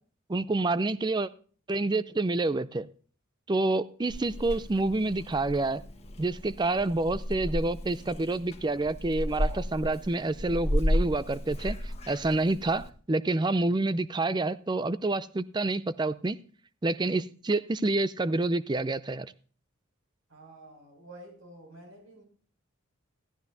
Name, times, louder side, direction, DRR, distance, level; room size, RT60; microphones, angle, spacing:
voice 1, 0.3-1.3 1.7-2.9 3.5-5.8 6.2-16.4 16.8-19.3, right 2 dB, 20° right, 15 dB, 0.4 m, -28 dB
Purr / Meow, 4.1-12.9, left 1 dB, 30° left, 1.4 m, -33 dB
voice 2, 20.3-22.2, right 1 dB, 70° right, 1 dB, 6.4 m, -49 dB
15.0 x 13.0 x 2.7 m, 0.42 s
head